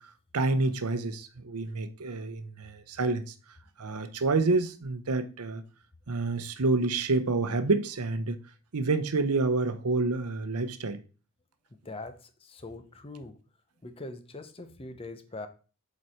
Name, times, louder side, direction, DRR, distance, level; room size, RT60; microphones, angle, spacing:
voice 1, 0.0-3.3 3.8-5.6 6.1-8.4 8.7-11.0, right 3 dB, 85° right, 0.8 m, -28 dB
voice 2, 11.8-13.4 13.8-15.5, left 2 dB, 25° left, 0.7 m, -42 dB
7.8 x 4.2 x 4.3 m
head